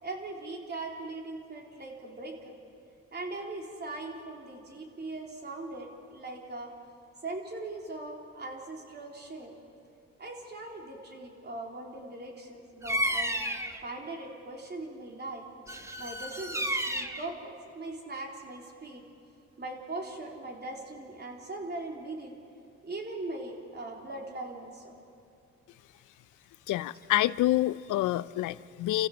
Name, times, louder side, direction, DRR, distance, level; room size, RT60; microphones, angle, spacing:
voice 1, 0.0-2.5 3.1-6.7 7.2-9.5 10.2-13.4 13.8-15.5 16.0-19.0 19.6-22.4 22.8-24.9, right 2 dB, 35° right, 0 dB, 3.7 m, -40 dB
Bird vocalization bird call bird song, 12.8-13.8 15.7-17.3, right 1 dB, 10° right, 1.4 m, -31 dB
voice 2, 26.7-29.1, left 15 dB, 80° left, 18 dB, 0.6 m, -27 dB
29.5 x 15.0 x 6.2 m, 2.7 s
cardioid pair, 90°, 30 cm